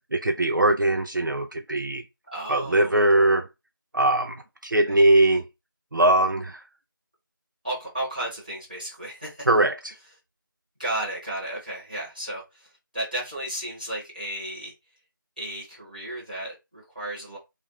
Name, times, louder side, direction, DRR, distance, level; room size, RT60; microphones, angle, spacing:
voice 1, 0.1-2.0 2.5-3.5 3.9-5.4 5.9-6.6 9.5-10.0, right 1 dB, 60° right, 0.4 m, -21 dB
voice 2, 2.3-3.0 4.8-4.9 7.6-9.5 10.8-14.7 15.4-17.4, right 1 dB, 20° right, 1.0 m, -33 dB
2.4 x 2.3 x 3.0 m
figure-of-eight pair, 175°, 12 cm